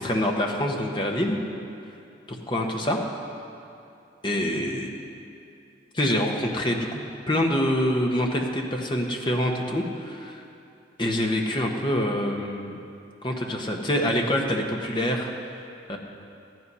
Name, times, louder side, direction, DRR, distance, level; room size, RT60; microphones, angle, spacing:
voice 1, 0.0-1.4 2.3-3.0 4.2-5.0 5.9-7.0 7.3-10.4 11.0-12.8 13.2-16.0, left 1 dB, 25° left, 1 dB, 1.1 m, -26 dB
14.5 x 11.0 x 5.6 m, 2.6 s
head